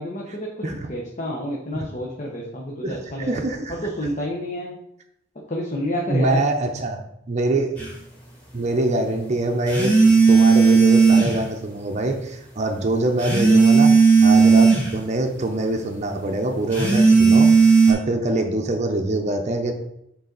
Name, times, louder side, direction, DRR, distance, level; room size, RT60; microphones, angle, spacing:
voice 1, 0.0-3.4 3.7-4.8 5.5-6.5, equal, 40° left, -2 dB, 0.8 m, -29 dB
voice 2, 3.3-3.7 6.1-7.8 8.5-19.7, right 2 dB, 35° right, 4 dB, 0.6 m, -24 dB
sound 1, 7.8-7.9 9.7-11.4 13.2-14.9 16.7-17.9, right 4 dB, 10° left, 2.5 m, -14 dB
6.8 x 4.0 x 3.9 m, 0.79 s
head